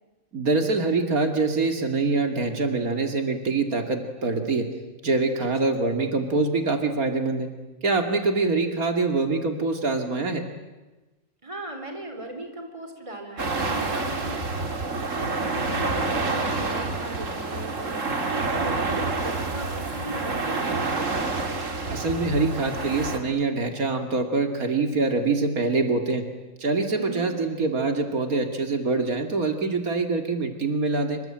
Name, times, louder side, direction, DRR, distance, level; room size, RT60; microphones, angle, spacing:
voice 1, 0.3-4.7 5.0-7.5 7.8-10.4 21.9-26.2 26.6-31.2, right 3 dB, 90° right, 6 dB, 2.9 m, -24 dB
voice 2, 5.4-5.7 11.4-14.6 15.1-18.0 18.3-21.0 26.9-27.3, right 1 dB, 20° right, 5 dB, 4.3 m, -38 dB
sound 1, 13.4-23.2, right 3 dB, 60° right, 2.8 m, -28 dB
27.0 x 25.0 x 8.9 m, 1.1 s
omnidirectional pair, 1.5 m